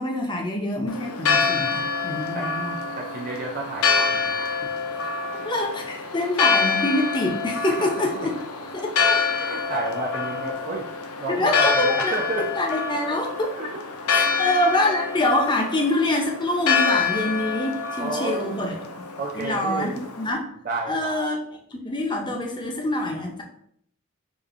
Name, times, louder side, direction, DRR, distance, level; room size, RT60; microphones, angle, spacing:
voice 1, 0.0-2.8 5.4-8.3 8.7-8.9 11.3-13.5 14.1-18.8 19.3-20.5 20.9-21.4 21.7-23.4, left 1 dB, 20° left, 2 dB, 0.5 m, -25 dB
Church bell, 0.9-20.3, left 5 dB, 80° left, 0.5 m, -26 dB
voice 2, 2.9-4.6 5.3-5.5 7.8-8.3 9.0-10.9 11.2-12.5 13.6-13.7 18.0-18.7 19.2-20.1 20.6-21.2, right 3 dB, 40° right, -1 dB, 0.4 m, -31 dB
4.9 x 2.5 x 2.5 m, 0.68 s
head